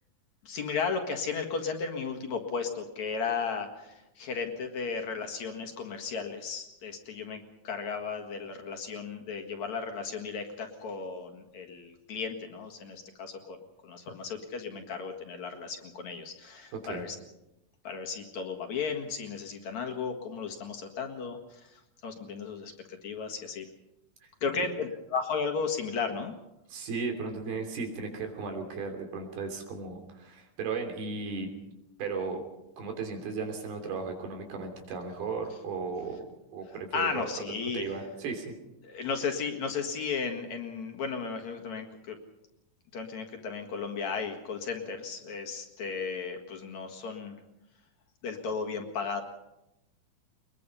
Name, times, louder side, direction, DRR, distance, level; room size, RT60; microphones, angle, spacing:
voice 1, 0.4-13.6 13.8-17.2 17.8-23.6 24.4-26.3 36.9-37.9 38.8-42.2 42.9-47.3 48.2-49.2, left 5 dB, 55° left, 3 dB, 2.8 m, -35 dB
voice 2, 16.7-17.0 24.2-24.7 26.7-31.5 32.0-32.4 32.8-36.2 36.5-37.3 37.7-38.5, right 4 dB, 85° right, 3 dB, 5.1 m, -35 dB
22.5 x 21.5 x 5.6 m, 0.91 s
omnidirectional pair, 4.3 m